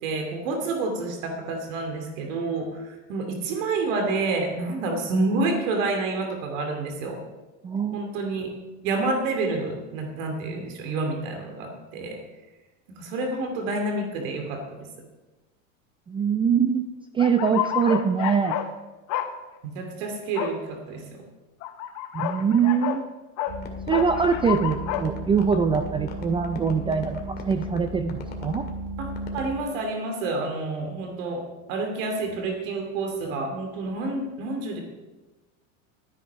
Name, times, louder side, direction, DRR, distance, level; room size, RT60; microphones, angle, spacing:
voice 1, 0.0-7.2 7.9-8.5 8.8-12.2 13.0-14.9 19.7-21.2 29.0-31.4 31.7-34.8, right 3 dB, 70° right, 3 dB, 2.7 m, -29 dB
voice 2, 7.6-8.0 16.1-16.9 17.1-18.6 22.1-23.0 23.9-28.6, right 6 dB, 15° right, 8 dB, 0.4 m, -23 dB
sound 1, 17.2-18.7 19.1-19.3 20.3-20.5 21.6-23.0 23.4-23.6 23.9-25.0, left 12 dB, 45° left, 1.1 m, -29 dB
sound 2, 23.5-29.5, equal, 25° left, 2.1 m, -35 dB
13.0 x 10.0 x 4.7 m, 1.2 s
supercardioid pair, 130°, 40 cm